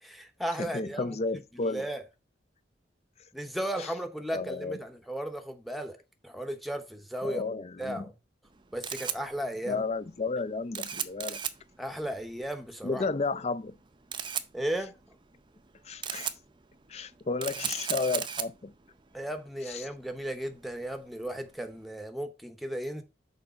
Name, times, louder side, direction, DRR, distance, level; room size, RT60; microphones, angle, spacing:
voice 1, 0.0-1.2 1.6-2.0 3.3-6.0 6.2-7.4 7.8-8.1 8.7-9.9 11.8-13.1 14.5-15.0 19.1-23.0, right 1 dB, ahead, 0.9 m, -35 dB
voice 2, 0.6-1.8 3.8-3.9 4.3-4.8 7.2-8.0 9.7-11.4 12.8-13.7 15.8-16.3 16.9-18.7 19.7-19.9, left 3 dB, 35° left, 0.4 m, -32 dB
Camera, 8.4-21.8, right 8 dB, 25° right, 0.5 m, -39 dB
6.6 x 4.6 x 5.0 m
head